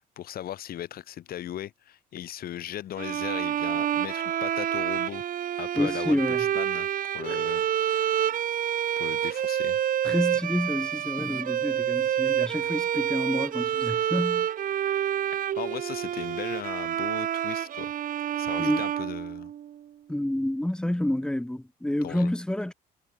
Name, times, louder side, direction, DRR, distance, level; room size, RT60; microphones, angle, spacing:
voice 1, 0.2-5.2 5.6-8.2 9.0-9.8 15.6-17.9 18.4-19.5 22.0-22.3, left 12 dB, 60° left, 5.3 m, -38 dB
sound 1, 3.0-19.8, right 10 dB, 55° right, 3.3 m, -28 dB
voice 2, 5.7-6.4 10.0-14.5 18.6-18.8 20.1-22.7, left 1 dB, 5° left, 3.5 m, -28 dB
cardioid pair, 110°, 17 cm